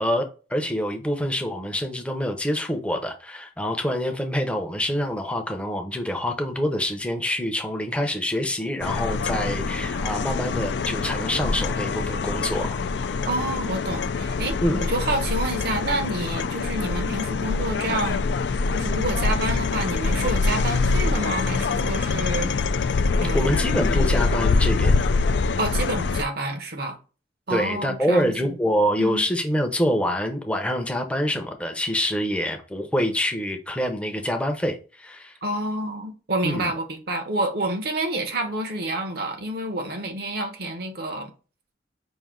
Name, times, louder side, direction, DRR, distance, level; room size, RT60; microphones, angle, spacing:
voice 1, 0.0-12.8 14.6-14.8 23.0-25.1 27.5-35.3 36.4-36.7, equal, 5° left, 0.6 m, -26 dB
sound 1, 8.8-26.2, left 4 dB, 65° left, 0.4 m, -24 dB
voice 2, 13.2-18.2 18.7-22.5 23.2-23.6 25.6-27.0 27.5-28.5 29.0-29.2 35.4-41.3, right 1 dB, 55° right, 0.9 m, -28 dB
5.3 x 2.7 x 3.6 m
head